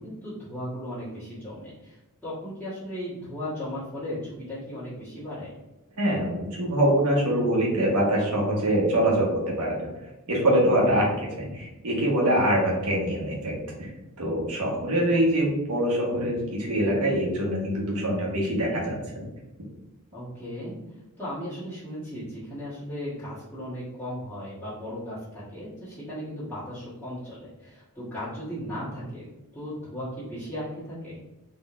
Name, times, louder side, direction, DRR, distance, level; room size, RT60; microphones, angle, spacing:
voice 1, 0.0-5.5 10.5-10.7 20.1-20.8 21.2-29.3 29.5-31.2, equal, 10° left, -15 dB, 1.4 m, -36 dB
voice 2, 6.0-9.8 10.3-13.6 14.2-19.3, right 1 dB, 85° right, -3 dB, 1.3 m, -24 dB
3.9 x 3.3 x 2.5 m, 1.0 s
head